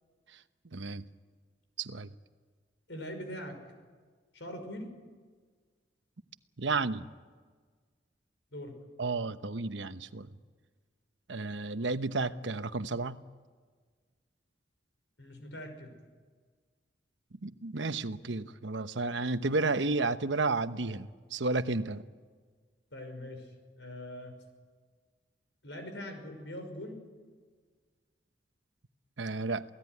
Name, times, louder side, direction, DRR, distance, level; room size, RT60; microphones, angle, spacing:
voice 1, 0.6-1.0 1.8-2.1 6.6-7.0 9.0-10.3 11.3-13.2 17.4-22.0 29.2-29.6, right 3 dB, 85° right, 11 dB, 1.0 m, -32 dB
voice 2, 2.9-3.6 4.3-4.9 8.5-8.8 15.2-15.9 22.9-24.4 25.6-27.0, left 1 dB, 85° left, 6 dB, 5.8 m, -42 dB
27.5 x 17.5 x 9.7 m, 1.5 s
head